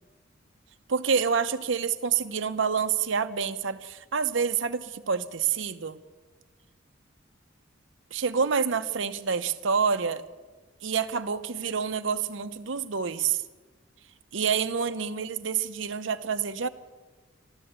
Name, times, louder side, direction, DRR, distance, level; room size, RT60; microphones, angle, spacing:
voice 1, 0.9-6.0 8.1-10.2 10.8-13.4 14.3-16.7, right 6 dB, 75° right, 11 dB, 0.7 m, -27 dB
13.0 x 13.0 x 8.0 m, 1.3 s
head